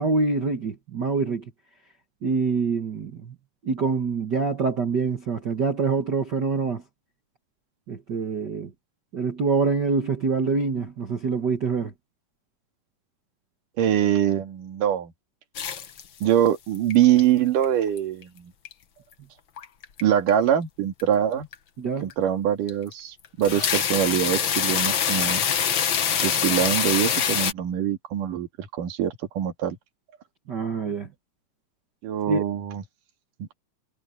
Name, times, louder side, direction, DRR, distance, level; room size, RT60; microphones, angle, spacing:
voice 1, 0.0-1.4 2.2-3.3 3.6-6.8 7.9-8.7 9.1-11.9 21.8-22.1 30.5-31.1 32.3-32.4, right 4 dB, 50° right, 1.4 m, -25 dB
voice 2, 13.8-15.1 16.2-18.5 20.0-21.5 22.0-25.5 26.2-29.8 32.0-32.8, right 10 dB, 80° right, 3.6 m, -23 dB
sound 1, 15.5-16.5 16.7-17.2 17.6-18.2 18.6-18.7 19.6-20.0 20.3-20.5 21.0-21.1 21.5-21.6 22.1-22.2 22.7-22.9 23.2-27.5, left 8 dB, 55° left, 1.4 m, -24 dB
omnidirectional pair, 3.7 m